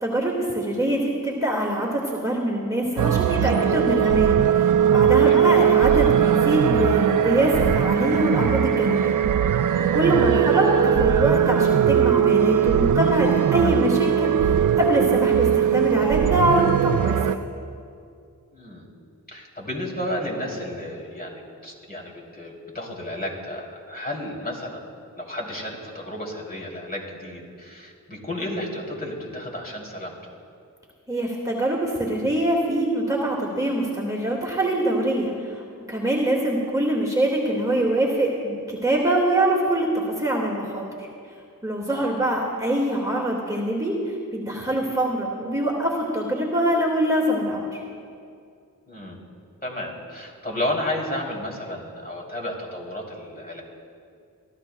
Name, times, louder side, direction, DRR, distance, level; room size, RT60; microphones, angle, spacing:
voice 1, 0.0-9.1 9.8-17.4 31.1-41.1 41.6-47.8, right 1 dB, 10° right, -3 dB, 2.0 m, -24 dB
sound 1, 3.0-17.4, right 9 dB, 60° right, 0.5 m, -20 dB
voice 2, 18.5-18.9 19.3-24.9 25.1-30.3 41.9-42.2 48.9-49.2 49.6-53.6, left 1 dB, 25° left, -2 dB, 3.0 m, -32 dB
23.5 x 13.0 x 2.3 m, 2.3 s
cardioid pair, 50°, 34 cm